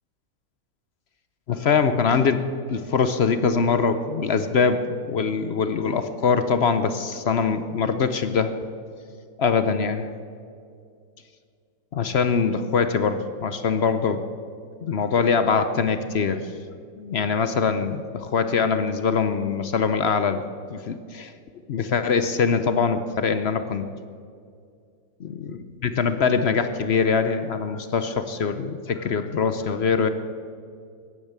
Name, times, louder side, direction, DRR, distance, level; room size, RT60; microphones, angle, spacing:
voice 1, 1.5-8.5 9.4-10.1 11.9-14.2 14.8-16.4 17.0-20.4 20.7-21.3 21.7-23.9 25.2-30.1, left 5 dB, 55° left, 10 dB, 0.7 m, -23 dB
16.0 x 10.5 x 8.1 m, 2.3 s
omnidirectional pair, 1.8 m